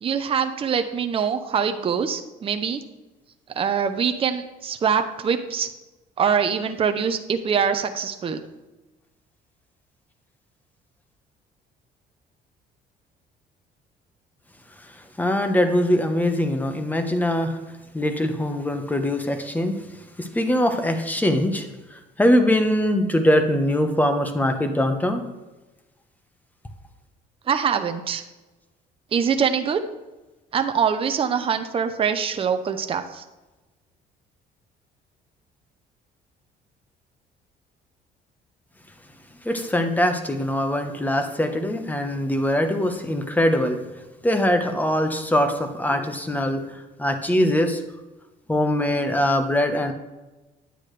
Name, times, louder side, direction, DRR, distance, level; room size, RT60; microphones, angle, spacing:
voice 1, 0.0-2.8 3.5-5.7 6.2-8.4 27.5-28.2 29.1-29.8 30.5-33.2, right 7 dB, 35° right, 8 dB, 0.7 m, -24 dB
voice 2, 15.2-17.6 17.9-19.8 20.2-21.6 22.2-25.2 39.4-43.8 44.2-46.6 47.0-47.8 48.5-49.9, left 1 dB, 10° left, 6 dB, 1.1 m, -22 dB
10.0 x 8.3 x 3.3 m, 1.1 s
cardioid pair, 110°, 17 cm